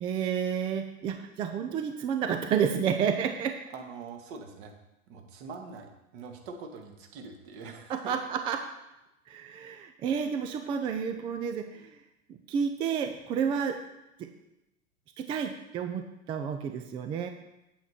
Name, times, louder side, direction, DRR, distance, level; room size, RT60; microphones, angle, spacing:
voice 1, 0.0-3.6 7.9-8.7 9.3-11.9 12.3-13.8 14.2-14.3 15.2-17.3, right 7 dB, 15° right, 6 dB, 0.3 m, -30 dB
voice 2, 3.7-4.7 5.1-8.1, right 4 dB, 50° right, 3 dB, 2.0 m, -44 dB
8.5 x 8.5 x 4.3 m, 0.91 s
hypercardioid pair, 100°, 41 cm